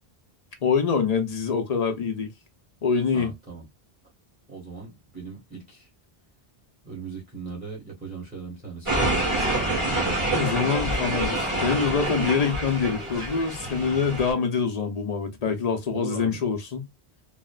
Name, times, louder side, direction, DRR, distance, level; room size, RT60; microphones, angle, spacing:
voice 1, 0.6-2.3 2.8-3.3 10.3-16.9, left 5 dB, 45° left, 0.6 m, -25 dB
voice 2, 3.1-3.7 4.5-5.9 6.8-9.9 10.7-10.9 15.9-16.4, right 4 dB, 10° right, 1.1 m, -39 dB
sound 1, 8.9-14.3, right 1 dB, 30° right, 1.8 m, -27 dB
3.1 x 2.1 x 2.3 m
omnidirectional pair, 1.0 m